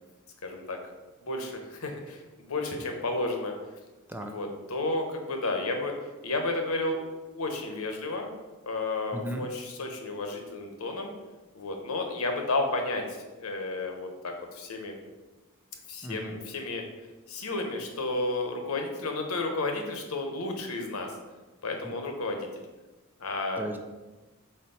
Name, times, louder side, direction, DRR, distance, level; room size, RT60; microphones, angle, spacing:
voice 1, 0.4-0.8 1.2-3.5 4.2-6.0 6.2-7.0 7.3-8.3 8.7-11.1 11.5-14.9 15.9-16.8 17.3-21.1 21.6-22.5 23.2-23.6, left 2 dB, 75° left, 3 dB, 1.0 m, -32 dB
voice 2, 9.1-9.5 16.0-16.4 21.8-21.9 23.6-23.8, equal, 10° right, 4 dB, 0.5 m, -36 dB
4.4 x 4.1 x 5.4 m, 1.2 s
head